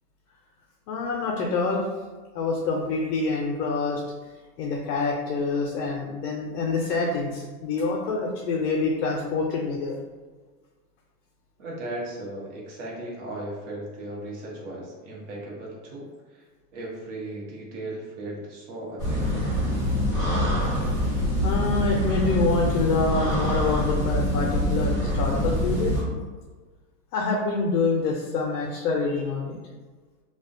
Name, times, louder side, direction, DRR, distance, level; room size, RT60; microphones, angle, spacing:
voice 1, 0.9-1.9 2.3-4.0 4.6-10.0 21.4-25.9 27.1-29.6, left 3 dB, 70° left, -1 dB, 0.5 m, -26 dB
voice 2, 11.6-16.4 16.7-19.6, right 1 dB, 45° right, -3 dB, 0.8 m, -37 dB
sound 1, 19.0-26.0, equal, 10° right, 0.7 m, -25 dB
2.3 x 2.1 x 2.5 m, 1.4 s
supercardioid pair, 150°, 49 cm